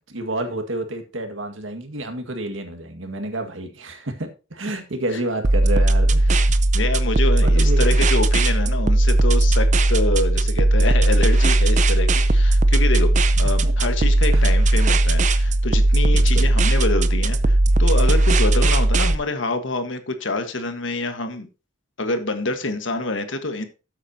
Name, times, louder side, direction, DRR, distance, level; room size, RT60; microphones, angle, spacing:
voice 1, 0.1-6.4 7.4-7.9 13.6-13.7 14.3-14.5 16.1-16.5, right 1 dB, 80° right, 1.9 m, -29 dB
sound 1, 5.4-19.2, right 1 dB, 35° right, 0.6 m, -17 dB
voice 2, 6.7-21.5 22.0-23.7, left 2 dB, 70° left, 1.5 m, -26 dB
12.5 x 8.2 x 2.8 m
head